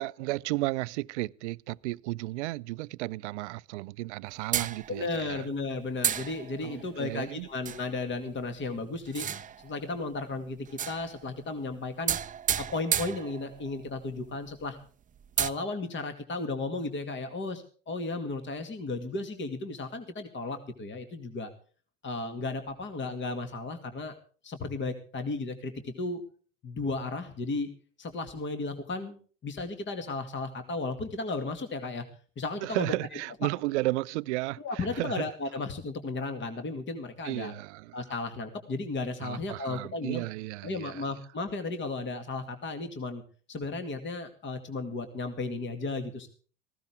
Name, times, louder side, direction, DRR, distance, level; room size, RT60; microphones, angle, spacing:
voice 1, 0.0-5.5 6.6-7.5 32.6-35.3 37.2-38.0 39.2-41.0, right 20 dB, 60° right, 0.6 m, -33 dB
sound 1, 4.5-5.3 6.0-6.8 7.6-7.9 9.1-9.8 10.7-11.3 12.1-13.8 14.2-14.3 14.6-14.7 15.2-15.5, right 9 dB, 20° right, 0.7 m, -32 dB
voice 2, 4.9-12.2 12.6-14.8 15.4-21.5 22.0-24.2 24.4-26.2 26.6-27.7 28.0-32.0 32.4-33.0 34.6-37.5 37.9-40.2 40.6-43.2 43.5-46.3, left 3 dB, 30° left, 2.3 m, -34 dB
18.5 x 15.5 x 3.6 m
figure-of-eight pair, 75°, 39 cm